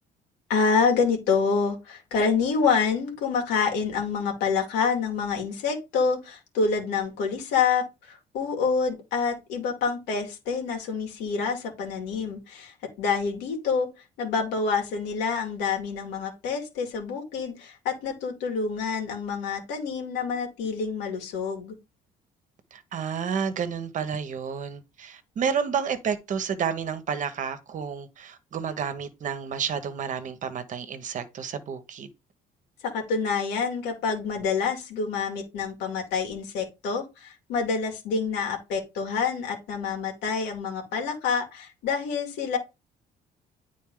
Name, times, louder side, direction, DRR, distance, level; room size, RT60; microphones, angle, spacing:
voice 1, 0.5-13.9 14.2-21.8 32.8-42.6, left 5 dB, 90° left, 2.4 m, -27 dB
voice 2, 22.7-32.1, right 7 dB, 50° right, 1.2 m, -30 dB
9.4 x 4.1 x 3.8 m
cardioid pair, 110°, 17 cm